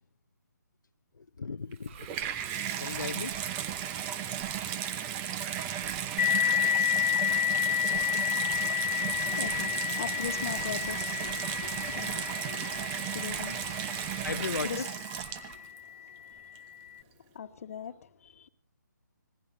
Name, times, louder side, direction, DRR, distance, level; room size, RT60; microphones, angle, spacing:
voice 1, 1.4-2.2 2.8-3.3 14.2-14.7, left 4 dB, 75° left, 0.8 m, -35 dB
Water tap faucet / Bathtub (filling or washing), 1.7-15.8 16.5-16.6, right 10 dB, 20° right, 0.9 m, -35 dB
sound 1, 1.8-2.5 2.9-4.0 4.4-4.7 5.8-6.1 7.3-7.6 7.9-8.2 8.5-9.8 10.2-12.4 12.7-13.0 13.3-14.9 15.2-15.6, right 7 dB, 40° right, 4.6 m, -50 dB
sound 2, 6.2-15.4, left 10 dB, 30° left, 0.7 m, -31 dB
voice 2, 9.2-18.5, left 7 dB, 45° left, 1.5 m, -42 dB
26.5 x 19.5 x 2.7 m
figure-of-eight pair, 150°, 10 cm